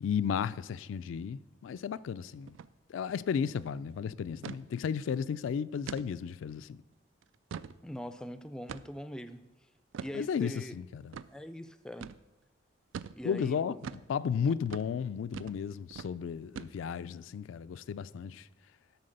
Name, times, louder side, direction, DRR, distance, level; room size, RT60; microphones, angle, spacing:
voice 1, 0.0-2.5 2.9-6.8 10.1-11.1 13.2-13.7 14.1-18.5, left 7 dB, 80° left, 0.3 m, -34 dB
sound 1, 2.5-2.7 3.0-3.1 3.5-3.7 4.4-4.6 5.1-5.2 5.9-6.1 6.6-6.7 7.2-7.8 8.7-9.1 9.9-10.2 11.1-11.3 12.0-12.2 12.9-13.2 13.8-14.1 14.7-14.9 15.3-15.6 15.9-16.1 16.6-17.0, right 7 dB, 80° right, 0.3 m, -42 dB
voice 2, 7.8-9.5 10.0-10.8 11.3-12.1 13.1-13.8 14.5-14.6, equal, 5° left, 0.3 m, -42 dB
12.5 x 4.2 x 6.6 m
head